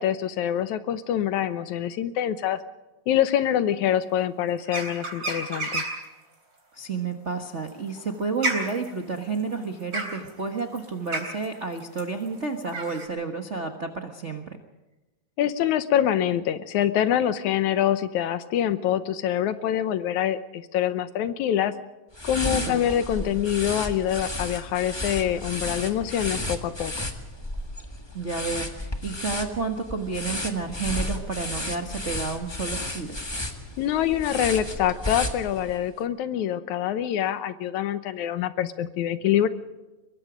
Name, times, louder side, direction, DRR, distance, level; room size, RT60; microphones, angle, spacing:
voice 1, 0.0-2.6 3.1-5.8 15.4-21.7 22.2-26.9 33.8-39.5, left 10 dB, 75° left, 12 dB, 2.2 m, -25 dB
sound 1, 4.7-6.1 7.5-13.1, right 2 dB, 30° right, 4.1 m, -31 dB
voice 2, 6.7-14.6 22.7-22.8 23.2-23.4 28.1-33.2, right 4 dB, 50° right, 5 dB, 0.8 m, -31 dB
sound 2, 22.1-35.8, left 1 dB, 15° left, 1.0 m, -33 dB
23.0 x 22.0 x 5.1 m, 1.0 s
omnidirectional pair, 3.5 m